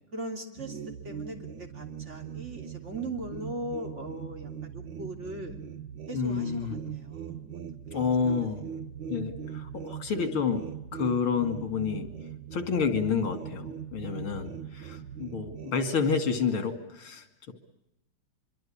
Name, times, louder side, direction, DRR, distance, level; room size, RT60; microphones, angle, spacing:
voice 1, 0.1-5.6 6.1-7.4 7.9-8.3, right 1 dB, 35° right, 4 dB, 3.4 m, -39 dB
sound 1, 0.6-15.7, right 8 dB, 65° right, 1.9 m, -40 dB
voice 2, 6.1-6.8 7.9-8.6 9.1-10.6 10.9-12.1 12.5-17.5, left 5 dB, 80° left, 9 dB, 3.3 m, -29 dB
25.0 x 24.0 x 8.8 m, 0.84 s
omnidirectional pair, 2.3 m